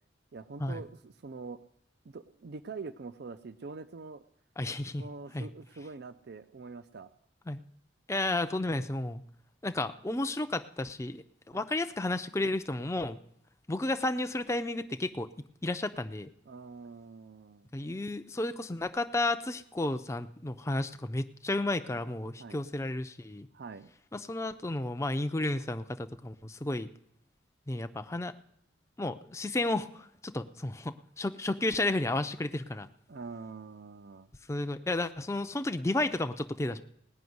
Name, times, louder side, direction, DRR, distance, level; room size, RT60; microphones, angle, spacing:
voice 1, 0.3-1.6 2.1-4.2 5.0-7.1 11.5-11.7 16.5-17.7 22.4-22.6 23.5-23.9 33.1-34.3, right 4 dB, 55° right, 13 dB, 0.5 m, -44 dB
voice 2, 4.6-5.1 5.3-5.5 7.5-7.6 8.1-9.2 9.6-13.2 13.7-15.3 15.6-16.3 17.7-23.5 24.1-26.9 27.7-28.3 29.0-32.9 34.5-36.8, left 2 dB, 15° left, 9 dB, 0.5 m, -32 dB
18.0 x 6.1 x 9.4 m, 0.73 s
head